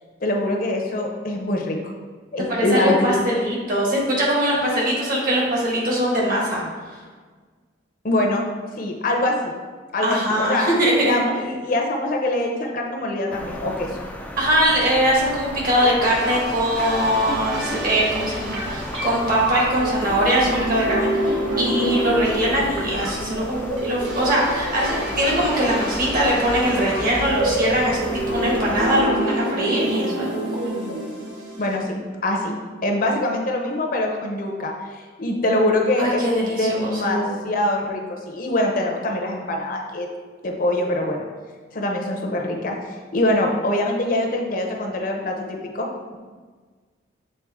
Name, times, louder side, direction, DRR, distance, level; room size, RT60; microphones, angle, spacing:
voice 1, 0.2-1.8 2.3-3.1 8.0-8.4 8.8-9.5 9.9-10.7 11.0-13.9 31.6-32.5 32.8-40.1 40.4-41.2 41.7-42.8 43.1-45.9, left 1 dB, 50° left, 1 dB, 0.7 m, -24 dB
voice 2, 2.5-6.6 10.0-11.2 14.4-30.3 36.0-37.4, equal, 50° right, -4 dB, 1.7 m, -22 dB
sound 1, 13.3-29.0, left 1 dB, 10° left, 0.4 m, -34 dB
sound 2, 15.8-31.8, right 1 dB, 70° right, 1.1 m, -27 dB
7.5 x 3.7 x 3.6 m, 1.5 s
head